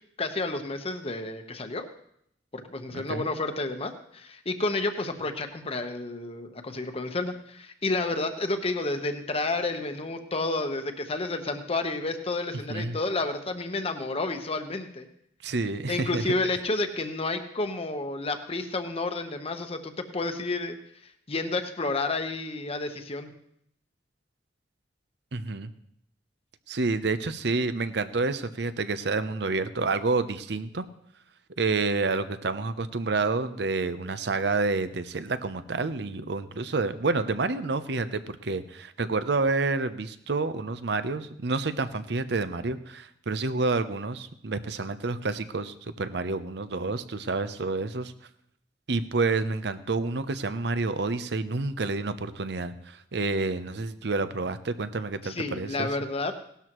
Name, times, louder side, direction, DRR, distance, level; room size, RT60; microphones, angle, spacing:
voice 1, 0.2-1.9 2.5-15.1 15.9-20.8 21.0-23.3 55.2-56.3, left 2 dB, 35° left, 7 dB, 1.1 m, -30 dB
voice 2, 2.9-3.2 12.7-13.0 15.4-16.2 25.3-25.7 26.7-30.8 31.6-48.1 48.9-55.9, right 3 dB, 70° right, 12 dB, 0.8 m, -29 dB
18.0 x 12.5 x 3.1 m, 0.73 s
head